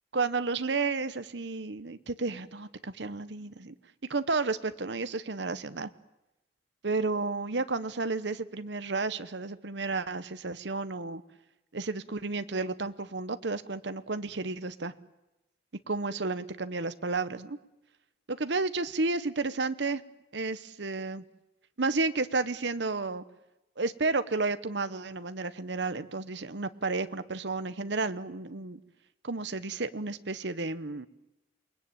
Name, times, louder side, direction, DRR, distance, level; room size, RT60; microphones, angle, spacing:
voice 1, 0.1-3.7 4.1-5.9 6.8-11.2 11.7-14.9 15.9-17.6 18.3-20.0 20.3-21.2 21.8-23.2 23.8-28.8 29.2-31.1, right 3 dB, 70° right, 12 dB, 1.0 m, -32 dB
28.0 x 21.0 x 9.0 m, 0.94 s
head